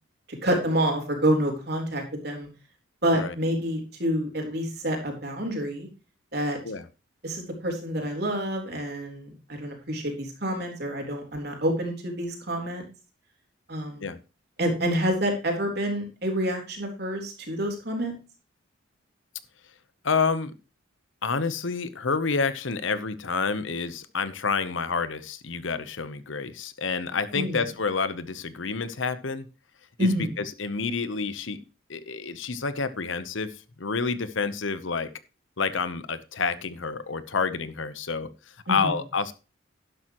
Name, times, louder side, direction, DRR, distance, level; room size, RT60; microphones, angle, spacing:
voice 1, 0.4-2.5 3.0-5.9 6.3-6.6 7.2-12.8 13.7-14.1 14.6-18.1 27.3-27.6 30.0-30.3 38.7-39.0, equal, 50° right, 3.9 m, -28 dB
voice 2, 20.0-20.5 21.2-29.5 30.0-31.6 31.9-35.1 35.6-38.3 38.7-39.3, left 4 dB, 70° left, 0.9 m, -29 dB
12.0 x 11.0 x 3.1 m
head